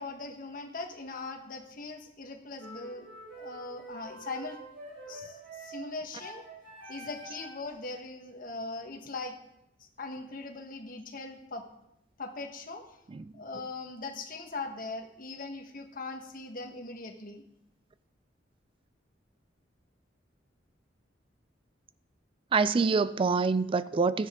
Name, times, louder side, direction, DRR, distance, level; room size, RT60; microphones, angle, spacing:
voice 1, 0.0-3.1 3.4-4.6 5.1-6.4 6.9-9.4 9.8-11.6 12.2-12.8 13.4-17.4, left 3 dB, 50° left, 1.3 m, -40 dB
sound 1, 2.6-7.7, right 2 dB, 75° right, 4.0 m, -46 dB
voice 2, 22.5-24.3, right 4 dB, 30° right, 0.3 m, -26 dB
12.5 x 9.8 x 3.7 m
head